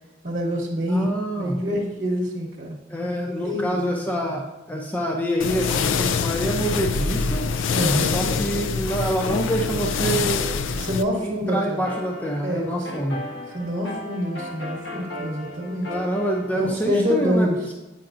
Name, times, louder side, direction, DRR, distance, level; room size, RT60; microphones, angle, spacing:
voice 1, 0.2-1.1 1.3-2.8 3.4-3.8 7.7-8.3 10.7-11.8 12.4-12.9 13.5-15.9 16.5-17.7, equal, 50° right, -4 dB, 0.9 m, -26 dB
voice 2, 0.9-1.6 2.9-7.4 8.1-10.5 11.1-13.3 15.9-17.5, right 1 dB, 10° left, 0 dB, 0.5 m, -26 dB
sound 1, 5.4-11.0, left 5 dB, 90° left, 0.4 m, -24 dB
sound 2, 11.6-16.8, left 1 dB, 65° left, 1.3 m, -36 dB
8.6 x 5.7 x 2.5 m, 1.1 s
head